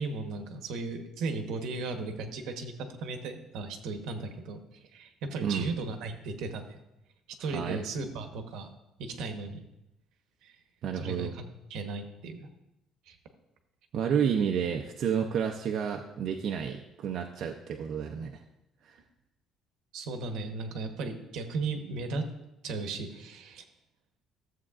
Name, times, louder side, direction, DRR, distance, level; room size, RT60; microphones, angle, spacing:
voice 1, 0.0-2.7 3.0-4.6 4.9-6.8 7.4-9.6 10.4-10.6 10.9-11.4 11.7-12.5 13.1-13.2 19.9-22.2 22.6-23.6, right 3 dB, 70° right, 6 dB, 1.0 m, -36 dB
voice 2, 5.4-5.7 7.4-7.8 10.8-11.3 13.9-18.4 18.8-19.0, right 7 dB, 50° right, 2 dB, 0.5 m, -30 dB
14.0 x 7.5 x 2.4 m, 0.91 s
cardioid pair, 160°, 0 cm